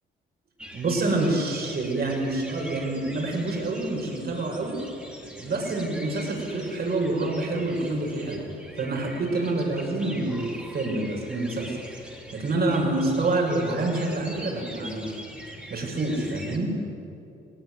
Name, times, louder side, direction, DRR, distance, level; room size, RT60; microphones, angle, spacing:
sound 1, 0.6-16.6, equal, 5° right, 3.3 m, -43 dB
voice 1, 0.7-4.8 5.4-8.5 8.8-12.0 12.3-15.1 15.7-16.8, right 2 dB, 50° right, 0 dB, 6.4 m, -27 dB
19.0 x 18.5 x 9.5 m, 2.7 s
cardioid pair, 90°, 20 cm